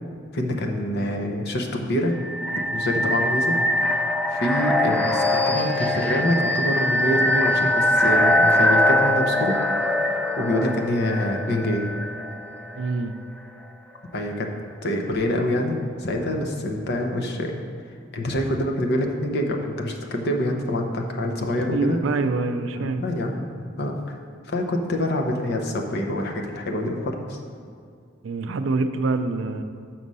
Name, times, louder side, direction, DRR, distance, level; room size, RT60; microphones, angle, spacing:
voice 1, 0.3-2.1 2.7-3.6 3.9-9.6 10.0-11.9 14.1-14.5 14.8-17.6 18.1-22.0 22.8-23.5 23.8-24.2 24.4-27.4, left 1 dB, 55° left, 2 dB, 0.8 m, -26 dB
sound 1, 2.1-12.9, left 1 dB, 5° left, 0.4 m, -22 dB
voice 2, 12.7-13.2 21.7-23.0 28.2-29.6, right 3 dB, 65° right, 9 dB, 0.4 m, -25 dB
6.3 x 6.0 x 5.5 m, 2.3 s
head